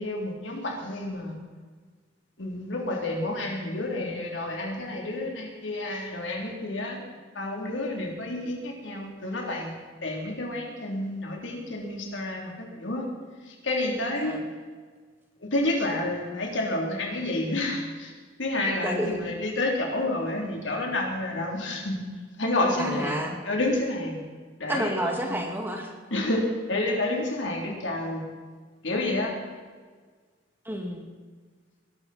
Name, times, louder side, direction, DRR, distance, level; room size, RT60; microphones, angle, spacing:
voice 1, 0.0-1.4 2.4-7.0 7.3-9.7 10.0-13.1 13.5-14.3 15.5-18.1 18.4-22.0 22.4-23.2 23.4-24.2 24.6-25.3 26.1-28.2 28.8-29.3, left 2 dB, 70° left, 0 dB, 3.4 m, -29 dB
voice 2, 18.8-19.2 22.8-23.4 24.7-25.9 30.7-31.1, equal, 10° right, 2 dB, 2.1 m, -30 dB
21.0 x 12.5 x 4.3 m, 1.5 s
head